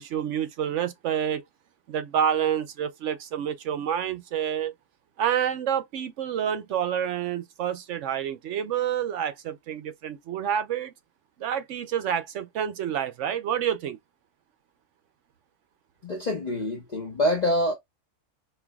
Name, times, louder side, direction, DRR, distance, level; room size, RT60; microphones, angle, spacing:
voice 1, 0.0-1.4 1.9-4.7 5.2-10.9 11.4-14.0, right 9 dB, 70° right, 0.9 m, -28 dB
voice 2, 16.0-17.7, left 1 dB, 40° left, 0.9 m, -26 dB
5.4 x 2.3 x 2.3 m
omnidirectional pair, 1.3 m